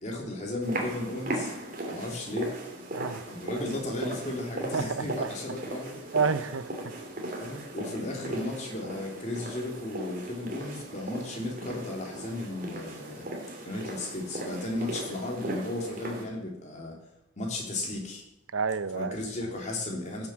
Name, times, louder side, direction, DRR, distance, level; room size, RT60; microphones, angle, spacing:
voice 1, 0.0-1.5 1.9-2.6 3.2-6.0 7.4-13.3 13.6-17.0 17.4-18.2 18.9-20.3, left 2 dB, 35° left, -1 dB, 3.3 m, -35 dB
sound 1, 0.6-16.3, right 1 dB, 40° right, 2.7 m, -38 dB
voice 2, 2.9-3.2 4.7-5.3 6.1-6.7 18.5-19.2, right 5 dB, 75° right, 14 dB, 0.7 m, -29 dB
Acoustic guitar, 11.6-14.8, right 1 dB, 20° left, 5.8 m, -53 dB
16.0 x 7.6 x 7.4 m, 0.82 s
head